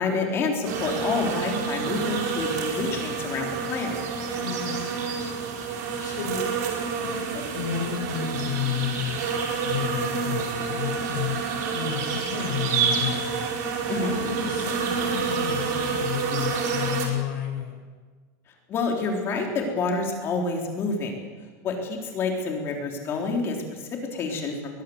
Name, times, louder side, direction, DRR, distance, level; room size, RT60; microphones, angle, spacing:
voice 1, 0.0-4.0 13.9-14.1 18.7-21.3 21.6-24.8, left 4 dB, 25° left, 2 dB, 4.0 m, -28 dB
sound 1, 0.6-17.1, right 5 dB, 70° right, 4.8 m, -28 dB
voice 2, 4.3-4.8 6.0-6.4 7.0-9.2 9.6-11.4 11.7-13.2 13.9-17.7, left 9 dB, 85° left, -1 dB, 6.5 m, -31 dB
21.5 x 21.5 x 8.1 m, 1.5 s
supercardioid pair, 180°, 10 cm